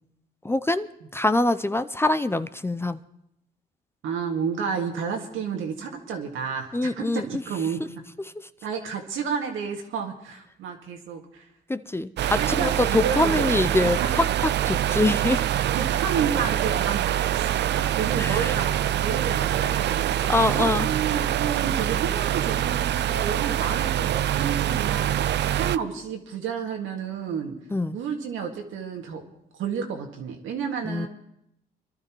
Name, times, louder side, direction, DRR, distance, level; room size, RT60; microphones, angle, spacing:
voice 1, 0.4-3.0 6.7-7.2 11.7-14.0 14.4-15.6 18.2-18.5 20.3-20.9 27.7-28.0 30.8-31.1, left 2 dB, 10° left, 11 dB, 0.5 m, -24 dB
voice 2, 4.0-7.8 8.6-11.5 12.4-14.1 15.7-27.5 27.9-29.2 29.6-31.1, right 6 dB, 80° right, 2 dB, 2.0 m, -31 dB
sound 1, 12.2-25.8, right 11 dB, 60° right, 0.5 m, -25 dB
25.5 x 12.0 x 3.0 m, 0.77 s
cardioid pair, 90°, 20 cm